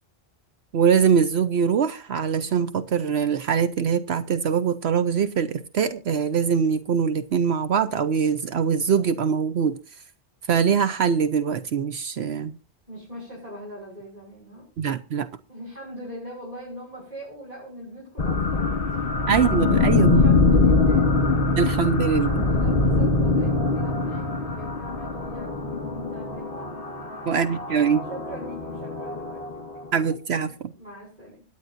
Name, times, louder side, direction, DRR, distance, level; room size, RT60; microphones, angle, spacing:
voice 1, 0.7-9.8 10.5-12.5 14.8-15.3 19.3-20.2 21.6-22.5 27.3-28.1 29.9-30.7, right 7 dB, 70° right, 1.1 m, -23 dB
voice 2, 12.9-14.7 15.5-19.3 19.7-21.1 21.8-21.9 22.5-27.5 28.1-29.4 30.4-31.4, equal, 35° right, 6.3 m, -41 dB
sound 1, 18.2-30.1, left 3 dB, 55° left, 2.3 m, -23 dB
25.0 x 9.5 x 2.6 m
omnidirectional pair, 1.1 m